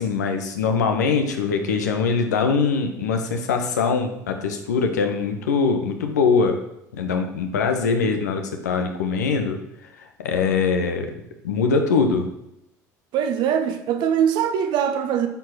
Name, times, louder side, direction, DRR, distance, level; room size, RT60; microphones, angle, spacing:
voice 1, 0.0-6.6 6.9-9.6 10.2-11.1 11.4-12.3, left 5 dB, 80° left, 1.1 m, -22 dB
voice 2, 13.1-15.3, right 8 dB, 55° right, 1.1 m, -22 dB
9.1 x 4.8 x 6.1 m
hypercardioid pair, 65°, 9 cm